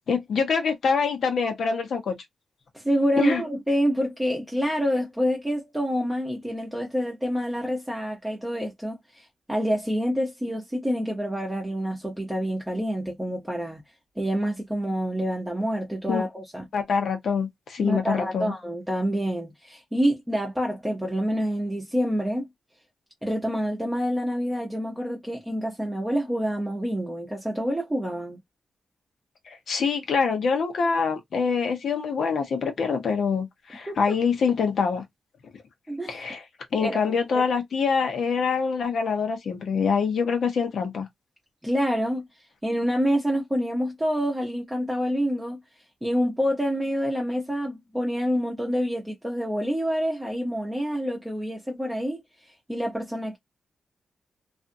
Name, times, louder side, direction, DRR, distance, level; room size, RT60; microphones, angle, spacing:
voice 1, 0.1-2.2 3.2-3.4 16.1-16.2 16.7-18.5 29.5-35.0 35.4-35.5 36.1-36.4 36.7-41.1, left 5 dB, 70° left, 1.0 m, -25 dB
voice 2, 2.7-13.8 14.2-16.7 17.8-22.5 23.2-28.4 33.9-34.1 35.9-36.2 36.8-37.4 41.6-42.3 42.6-45.6 46.0-53.4, equal, 10° right, 0.9 m, -27 dB
2.6 x 2.4 x 2.6 m
cardioid pair, 80°, 0 cm